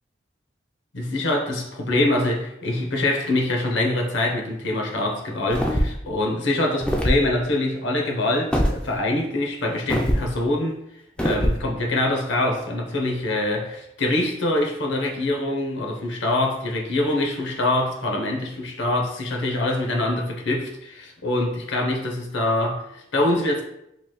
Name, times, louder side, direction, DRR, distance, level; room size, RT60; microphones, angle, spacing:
voice 1, 0.9-10.8 11.2-23.6, left 1 dB, 90° left, 1 dB, 0.8 m, -24 dB
sound 1, 5.5-6.1 6.8-7.2 8.5-8.8 9.9-10.2 11.2-11.6, equal, 5° left, 0.3 m, -22 dB
4.6 x 3.0 x 2.2 m, 0.81 s
head